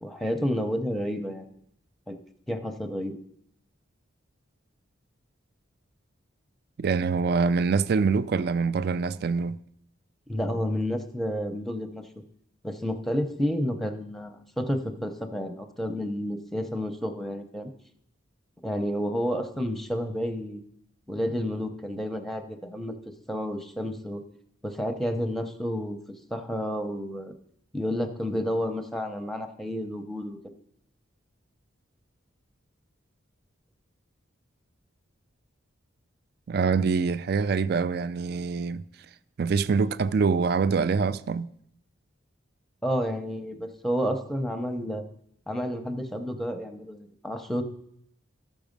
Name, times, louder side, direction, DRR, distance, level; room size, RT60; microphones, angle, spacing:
voice 1, 0.0-1.6 2.1-2.2 2.5-3.2 10.3-12.0 12.6-17.7 18.6-20.6 21.1-23.0 23.3-24.2 24.6-26.0 26.3-27.3 27.7-30.4 42.8-45.0 45.5-47.6, equal, ahead, 0.7 m, -30 dB
voice 2, 6.8-9.6 36.5-38.8 39.4-41.5, right 5 dB, 50° right, 0.4 m, -25 dB
13.5 x 6.1 x 5.2 m
head